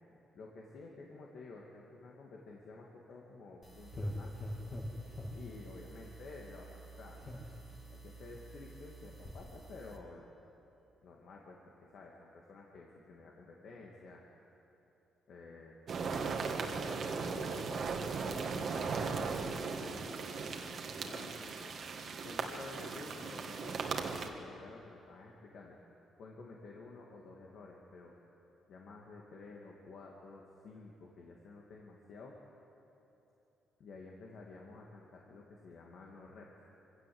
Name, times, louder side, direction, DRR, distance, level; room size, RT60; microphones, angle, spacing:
voice 1, 0.1-4.4 5.3-7.2 7.9-10.3 11.0-14.2 15.3-15.8 16.1-17.9 18.4-21.7 22.2-23.9 24.4-25.8 26.2-28.1 28.7-32.4 33.8-36.5, left 3 dB, 65° left, -1 dB, 2.2 m, -52 dB
sound 1, 3.6-10.0, equal, 40° left, 3.1 m, -45 dB
sound 2, 15.9-24.3, right 4 dB, 55° right, 1.8 m, -37 dB
24.0 x 16.5 x 7.9 m, 3.0 s
cardioid pair, 90°, 0 cm